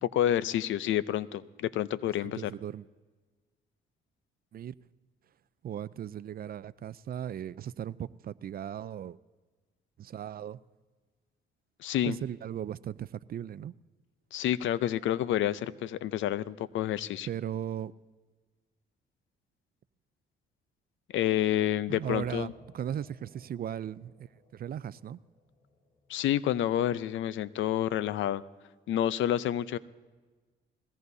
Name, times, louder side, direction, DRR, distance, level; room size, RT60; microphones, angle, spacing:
voice 1, 0.0-2.5 11.8-12.2 14.3-17.3 21.1-22.5 26.1-28.4 28.9-29.8, left 11 dB, 75° left, 0.6 m, -29 dB
voice 2, 2.2-2.9 4.5-4.7 5.6-9.2 10.0-10.6 12.1-13.7 17.3-17.9 21.9-25.2, right 10 dB, 50° right, 0.5 m, -37 dB
sound 1, 22.0-27.4, left 4 dB, 40° left, 3.8 m, -60 dB
21.5 x 17.0 x 2.7 m
cardioid pair, 90°, 20 cm